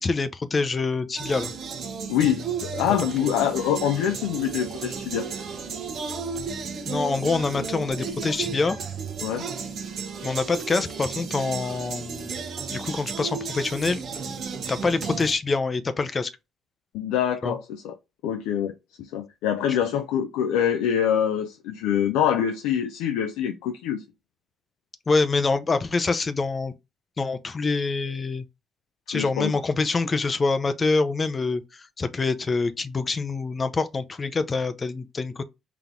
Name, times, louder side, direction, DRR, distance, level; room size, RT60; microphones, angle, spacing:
voice 1, 0.0-1.5 6.9-8.8 10.2-12.4 12.7-14.0 14.7-16.3 17.4-17.5 19.7-19.8 25.1-26.7 27.2-28.4 29.1-35.4, left 4 dB, 35° left, 0.5 m, -25 dB
sound 1, 1.2-15.3, right 5 dB, 60° right, 0.8 m, -33 dB
voice 2, 2.1-5.3 9.2-9.5 16.9-17.9 18.2-24.0 29.1-29.5, left 9 dB, 85° left, 0.4 m, -25 dB
4.0 x 2.8 x 3.6 m
supercardioid pair, 65°, 0 cm